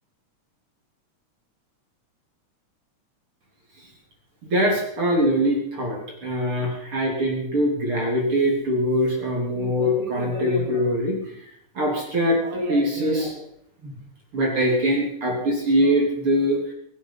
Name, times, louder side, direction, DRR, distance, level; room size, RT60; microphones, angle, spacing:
voice 1, 4.4-11.4 11.8-13.4 13.8-13.9 14.3-16.6, equal, 45° right, -1 dB, 4.1 m, -23 dB
25.5 x 9.5 x 5.9 m, 0.72 s
omnidirectional pair, 3.4 m